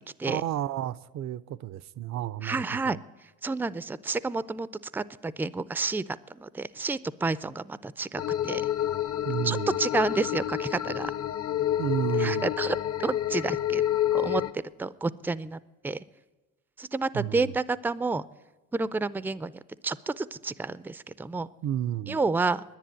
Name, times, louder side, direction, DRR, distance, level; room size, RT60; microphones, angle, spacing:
voice 1, 0.3-2.6 9.2-9.8 11.8-12.5 17.1-17.6 21.6-22.2, right 11 dB, 55° right, 0.5 m, -31 dB
voice 2, 2.4-3.0 3.4-4.7 4.9-8.6 9.4-11.1 12.2-13.8 14.1-16.0 16.8-18.2 18.7-19.5 19.8-21.5 22.1-22.6, right 3 dB, 5° right, 0.4 m, -30 dB
sound 1, 8.2-14.5, left 11 dB, 45° left, 0.7 m, -28 dB
10.5 x 10.5 x 9.0 m
cardioid pair, 85°, 33 cm